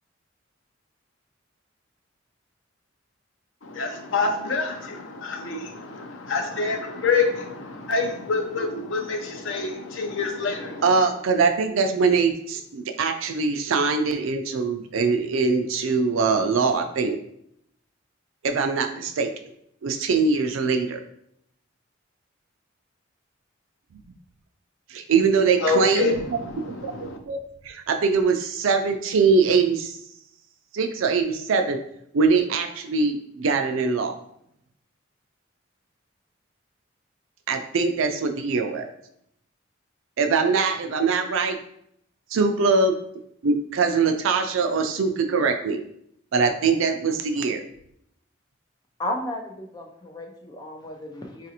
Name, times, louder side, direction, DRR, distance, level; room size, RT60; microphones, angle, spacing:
voice 1, 3.6-11.0 25.6-27.2, left 4 dB, 75° left, 3 dB, 0.5 m, -27 dB
voice 2, 10.8-17.2 18.4-19.3 19.8-21.0 24.9-26.4 26.8-27.4 27.6-30.0 30.7-31.8 32.1-34.2 37.5-38.9 40.2-41.6 42.3-42.9 43.4-45.8 46.3-47.6, right 4 dB, 85° right, 6 dB, 0.4 m, -22 dB
voice 3, 49.0-51.5, left 1 dB, 20° left, 1 dB, 0.4 m, -33 dB
4.0 x 2.5 x 2.8 m, 0.72 s
head